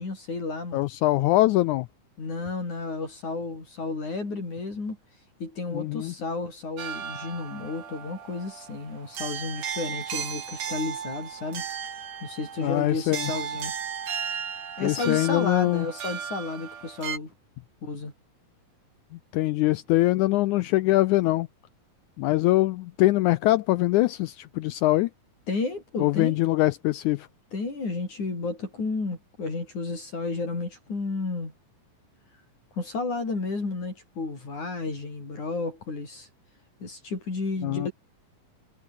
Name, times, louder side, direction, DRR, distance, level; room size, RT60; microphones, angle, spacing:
voice 1, 0.0-0.8 2.2-5.0 5.4-11.6 12.2-13.7 14.8-17.3 17.8-18.1 25.5-26.4 27.5-31.5 32.8-36.3 36.8-37.9, left 3 dB, 55° left, 8.5 m, -32 dB
voice 2, 0.7-1.9 5.7-6.1 12.6-13.3 14.8-15.9 19.3-21.5 22.2-25.1 26.0-27.3 37.6-37.9, left 17 dB, 80° left, 1.8 m, -23 dB
sound 1, 6.8-17.2, right 8 dB, 55° right, 3.4 m, -35 dB
omnidirectional pair, 4.0 m